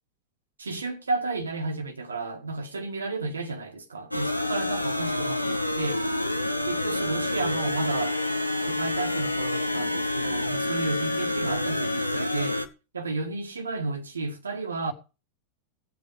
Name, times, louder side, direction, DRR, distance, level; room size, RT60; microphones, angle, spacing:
voice 1, 0.6-6.1 6.6-8.2 8.7-12.6 12.9-14.9, right 3 dB, 75° right, 1.9 m, -32 dB
sound 1, 4.1-12.7, left 2 dB, 90° left, 1.3 m, -28 dB
18.5 x 8.3 x 5.1 m
figure-of-eight pair, 90°, 0 cm